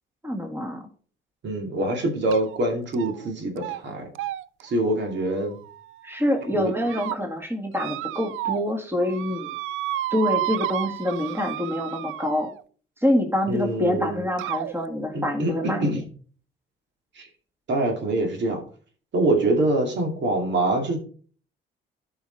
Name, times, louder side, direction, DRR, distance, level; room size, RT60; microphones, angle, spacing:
voice 1, 0.2-0.9 6.0-9.5 10.1-12.5 13.0-15.9, left 1 dB, 10° right, 3 dB, 2.0 m, -26 dB
voice 2, 1.4-4.1 4.6-5.6 6.5-6.7 13.5-14.2 15.1-16.0 17.2-17.3 17.7-18.6 19.1-21.0, right 2 dB, 65° right, 2 dB, 2.5 m, -25 dB
sound 1, 2.3-2.6 2.9-3.3 3.6-3.8 4.1-6.1 6.6-7.2 7.7-8.7 9.0-12.6 13.6-13.7 14.4-14.7, right 14 dB, 80° right, 0.4 m, -32 dB
12.0 x 5.7 x 4.1 m, 0.42 s
cardioid pair, 90°, 20 cm